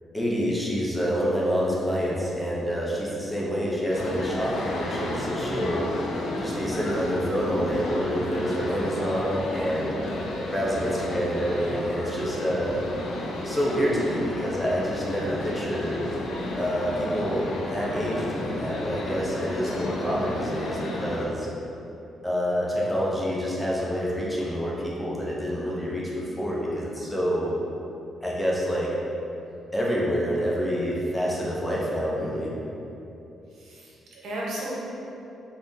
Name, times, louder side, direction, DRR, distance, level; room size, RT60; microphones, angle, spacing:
voice 1, 0.1-5.9 6.4-9.9 10.5-12.7 13.4-16.0 16.5-21.5 22.2-27.6 28.2-28.9 29.7-32.5, equal, 5° left, -6 dB, 0.4 m, -27 dB
sound 1, 3.9-21.3, left 1 dB, 75° left, 0.4 m, -32 dB
voice 2, 33.6-34.8, right 1 dB, 75° right, -6 dB, 0.7 m, -34 dB
2.5 x 2.5 x 3.6 m, 2.8 s
cardioid pair, 170°, 0 cm